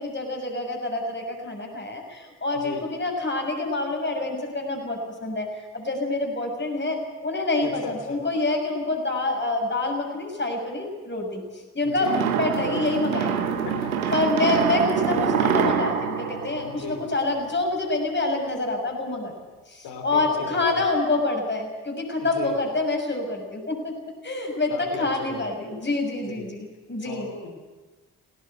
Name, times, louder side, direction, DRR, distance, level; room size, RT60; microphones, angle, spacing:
voice 1, 0.0-13.6 14.1-19.3 19.7-24.0 24.2-27.3, left 2 dB, 25° left, 2 dB, 6.7 m, -27 dB
voice 2, 2.5-2.8 7.6-8.2 11.8-12.2 13.6-14.2 16.6-17.0 19.8-20.9 22.2-22.6 24.7-25.7 26.2-26.5 27.0-27.5, left 5 dB, 60° left, 6 dB, 3.1 m, -37 dB
sound 1, 12.0-17.4, right 7 dB, 80° right, 1.4 m, -25 dB
19.5 x 18.5 x 8.1 m, 1.3 s
figure-of-eight pair, 40°, 42 cm